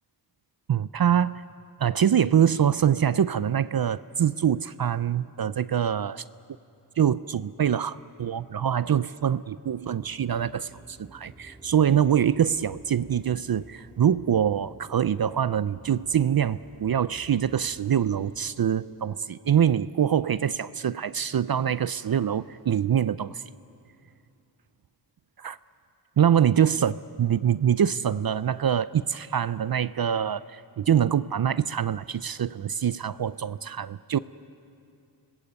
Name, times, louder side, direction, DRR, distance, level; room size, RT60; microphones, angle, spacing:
voice 1, 0.7-1.4 1.8-6.2 7.0-23.4 25.4-25.6 26.2-34.2, right 9 dB, 60° right, 16 dB, 0.5 m, -24 dB
sound 1, 9.8-18.4, right 1 dB, 10° right, 3.3 m, -51 dB
28.0 x 20.5 x 8.1 m, 2.5 s
wide cardioid pair, 65°, 42 cm